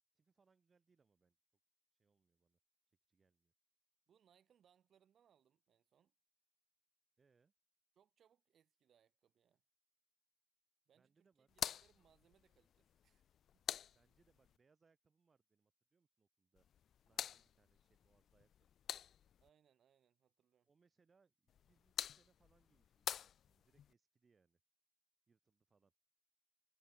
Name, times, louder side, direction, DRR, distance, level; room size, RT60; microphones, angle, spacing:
voice 1, 0.1-1.4 1.9-2.6 2.9-3.5 7.2-7.5 10.9-11.5 13.9-16.7 17.0-18.7 20.6-24.6 25.3-25.9, right 5 dB, 35° right, 5.9 m, -78 dB
voice 2, 4.1-6.1 7.9-9.6 10.9-13.2 13.5-13.7 19.4-20.7, right 9 dB, 60° right, 6.5 m, -75 dB
sound 1, 11.5-14.6 16.6-19.5 21.5-23.9, left 9 dB, 65° left, 0.7 m, -48 dB
cardioid pair, 90°, 0 cm